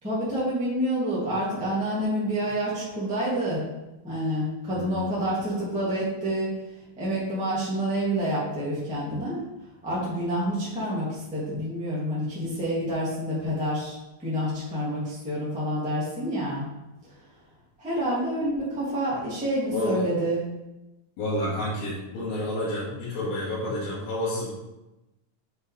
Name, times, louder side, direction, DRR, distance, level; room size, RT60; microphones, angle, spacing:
voice 1, 0.0-3.6 4.0-6.5 7.0-9.4 9.8-16.6 17.0-17.1 17.8-20.5, right 1 dB, 5° right, -9 dB, 1.9 m, -28 dB
voice 2, 4.7-5.6 19.7-20.1 21.2-24.5, left 1 dB, 85° left, -9 dB, 3.9 m, -30 dB
7.9 x 6.0 x 3.5 m, 0.98 s
omnidirectional pair, 4.1 m